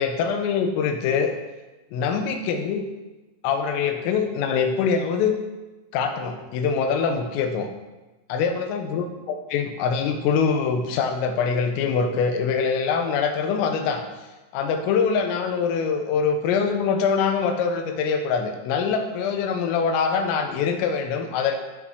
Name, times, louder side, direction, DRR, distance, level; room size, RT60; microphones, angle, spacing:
voice 1, 0.0-1.3 1.9-2.9 3.4-5.4 5.9-7.7 8.3-14.0 14.5-21.6, left 6 dB, 80° left, 6 dB, 3.7 m, -24 dB
15.0 x 6.4 x 6.4 m, 1.1 s
omnidirectional pair, 6.0 m